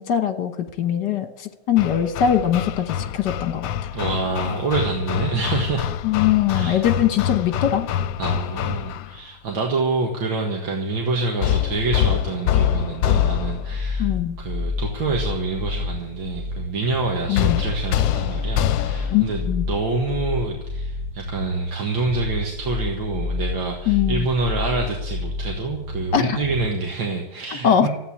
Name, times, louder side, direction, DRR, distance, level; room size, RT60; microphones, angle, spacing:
voice 1, 0.0-3.9 6.0-7.9 14.0-14.4 17.3-17.6 19.1-19.7 23.9-24.2 26.1-26.4 27.6-27.9, left 9 dB, 65° left, 9 dB, 1.8 m, -21 dB
Hammer, 1.8-9.2 11.4-13.8 17.4-19.3, left 11 dB, 80° left, 1.4 m, -25 dB
voice 2, 3.9-5.9 6.5-6.9 8.2-19.4 19.7-27.9, right 3 dB, 90° right, 0 dB, 2.5 m, -26 dB
sound 1, 13.0-26.7, left 3 dB, 20° right, 2.3 m, -29 dB
13.5 x 9.2 x 8.6 m, 0.92 s
omnidirectional pair, 2.0 m